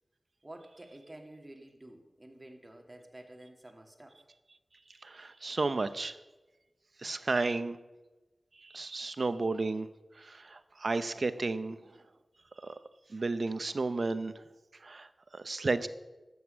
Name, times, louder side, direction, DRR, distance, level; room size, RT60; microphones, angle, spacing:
voice 1, 0.4-4.3, right 1 dB, 30° right, 2 dB, 2.3 m, -50 dB
voice 2, 5.0-6.2 7.0-7.8 8.6-9.9 10.2-11.8 12.6-12.7 13.1-14.4 14.8-15.1 15.3-15.9, right 3 dB, 65° right, 11 dB, 0.8 m, -32 dB
12.5 x 8.4 x 8.4 m, 1.1 s
wide cardioid pair, 55°, 0 cm